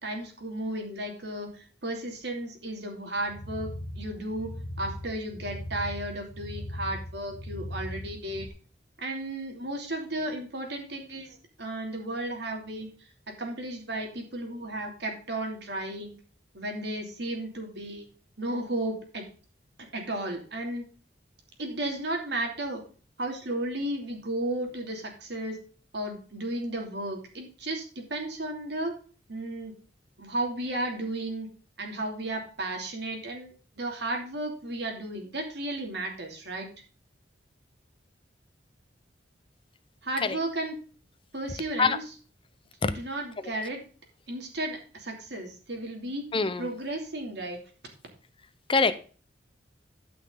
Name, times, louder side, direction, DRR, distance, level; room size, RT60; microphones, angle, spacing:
voice 1, 0.0-4.5 4.8-8.5 9.0-16.2 16.5-18.0 18.4-19.3 19.9-20.9 21.6-22.8 23.2-25.6 25.9-28.9 29.3-29.7 30.2-31.5 31.8-36.7 40.0-40.8 41.3-42.0 42.9-43.8 44.3-46.3 46.6-47.6, right 1 dB, 65° right, 2 dB, 2.9 m, -34 dB
sound 1, 3.2-8.5, left 1 dB, 65° left, 2.3 m, -39 dB
voice 2, 46.3-46.7 48.7-48.9, left 4 dB, 30° left, 12 dB, 0.7 m, -24 dB
12.5 x 5.9 x 3.9 m, 0.39 s
head